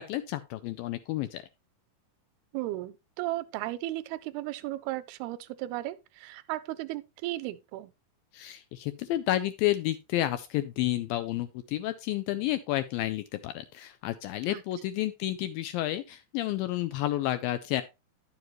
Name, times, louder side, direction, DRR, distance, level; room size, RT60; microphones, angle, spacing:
voice 1, 0.0-1.4 8.3-17.8, left 14 dB, 80° left, 2.1 m, -30 dB
voice 2, 2.5-7.9 14.5-14.6, right 16 dB, 85° right, 2.5 m, -35 dB
11.0 x 7.1 x 3.0 m
omnidirectional pair, 4.5 m